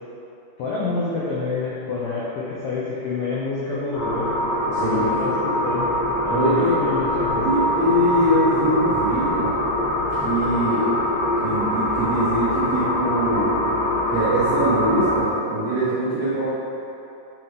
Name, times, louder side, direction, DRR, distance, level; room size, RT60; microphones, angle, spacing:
voice 1, 0.6-4.3 4.8-5.9 6.2-7.5, left 3 dB, 85° left, -7 dB, 1.9 m, -27 dB
sound 1, 3.9-15.2, left 1 dB, 60° left, 1.8 m, -23 dB
voice 2, 4.7-5.1 6.3-6.8 7.4-9.5 10.2-10.9 11.4-13.5 14.1-16.5, equal, 70° right, -13 dB, 1.6 m, -23 dB
8.4 x 4.8 x 3.6 m, 2.9 s
omnidirectional pair, 4.9 m